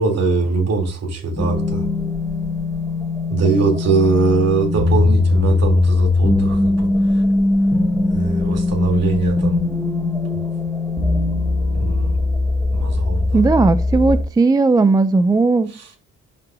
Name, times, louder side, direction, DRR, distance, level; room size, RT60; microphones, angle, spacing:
voice 1, 0.0-1.8 3.3-7.2 8.1-9.6 11.7-12.2 12.7-13.4 15.7-16.0, right 4 dB, 55° right, 3.2 m, -21 dB
sound 1, 1.4-14.2, left 2 dB, 10° left, 2.2 m, -20 dB
voice 2, 13.3-15.7, right 3 dB, 15° right, 0.4 m, -16 dB
10.5 x 5.9 x 2.7 m
cardioid pair, 90°, 30 cm